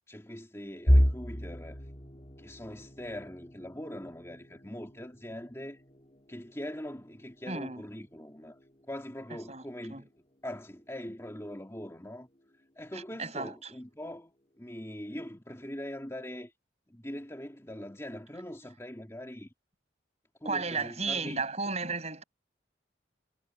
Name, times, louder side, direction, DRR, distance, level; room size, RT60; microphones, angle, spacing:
voice 1, 0.1-1.8 2.4-5.8 6.3-8.6 8.9-10.1 10.4-12.3 12.8-16.5 16.9-19.5 20.4-21.4, left 1 dB, 15° left, 2.7 m, -42 dB
sound 1, 0.9-12.7 13.1-13.4 13.8-13.9 14.8-15.3, equal, 30° left, 3.7 m, -34 dB
voice 2, 7.5-7.8 9.5-9.6 9.9-10.0 12.9-13.7 20.4-22.2, right 4 dB, 35° right, 7.9 m, -34 dB
head